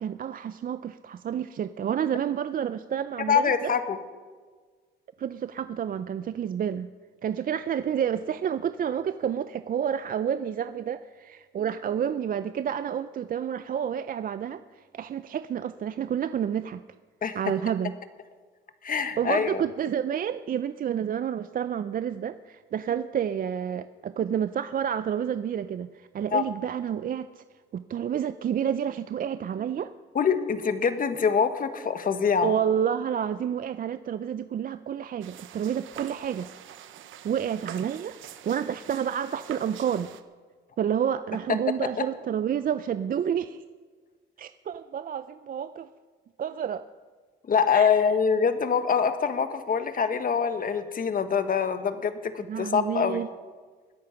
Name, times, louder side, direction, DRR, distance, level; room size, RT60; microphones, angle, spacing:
voice 1, 0.0-3.7 5.2-6.9 7.2-16.8 17.3-17.9 19.2-27.4 27.7-29.9 32.4-36.5 37.2-38.2 38.4-40.1 40.8-43.6 44.4-45.9 46.4-46.9 47.7-47.9 52.5-53.3, right 8 dB, 45° right, 12 dB, 0.5 m, -29 dB
voice 2, 3.3-4.0 17.2-17.4 18.8-19.6 26.3-26.4 30.1-32.5 47.5-53.2, left 6 dB, 45° left, 9 dB, 1.3 m, -24 dB
sound 1, 35.2-40.2, right 10 dB, 80° right, 0.9 m, -44 dB
20.5 x 8.6 x 5.8 m, 1.5 s
cardioid pair, 90°, 20 cm